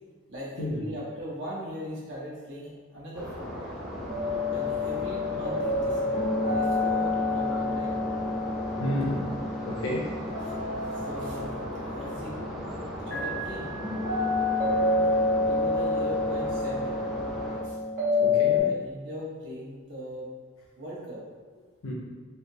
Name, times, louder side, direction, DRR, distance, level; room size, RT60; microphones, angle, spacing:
voice 1, 0.3-3.7 4.5-7.9 10.4-11.6 11.9-12.4 13.1-13.8 15.4-17.0 17.6-17.8 18.6-20.3 20.8-21.2, equal, 60° right, -7 dB, 1.0 m, -39 dB
sound 1, 3.1-17.6, left 1 dB, ahead, 0.4 m, -37 dB
sound 2, 4.1-18.6, left 3 dB, 40° right, 1.0 m, -28 dB
voice 2, 8.8-9.2 9.7-10.1 18.2-18.7 21.8-21.9, left 1 dB, 85° left, -3 dB, 0.6 m, -30 dB
3.3 x 2.7 x 2.6 m, 1.4 s
head